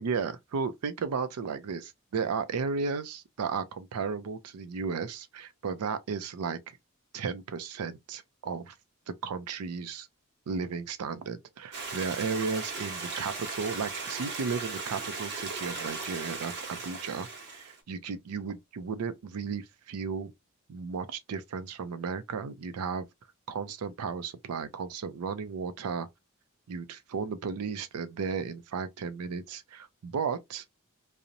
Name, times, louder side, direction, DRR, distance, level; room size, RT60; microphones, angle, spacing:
voice 1, 0.0-6.8 7.1-8.8 9.2-10.1 10.5-17.3 17.5-20.3 20.7-23.1 23.5-26.1 26.7-30.6, right 5 dB, 80° right, 0.4 m, -34 dB
Stream, 11.7-17.8, right 4 dB, 50° right, 0.9 m, -37 dB
2.8 x 2.0 x 2.5 m
head